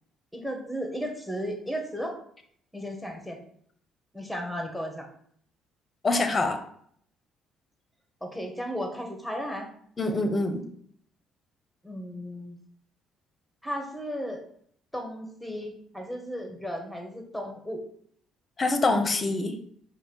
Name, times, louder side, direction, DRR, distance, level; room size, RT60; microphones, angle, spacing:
voice 1, 0.3-2.2 2.7-3.4 4.1-5.1 8.2-9.7 11.8-12.6 13.6-14.4 14.9-17.8, equal, ahead, 3 dB, 1.3 m, -34 dB
voice 2, 6.0-6.6 10.0-10.6 18.6-19.6, left 2 dB, 35° left, 7 dB, 0.7 m, -25 dB
5.2 x 2.6 x 3.9 m, 0.64 s
hypercardioid pair, 50°, 0 cm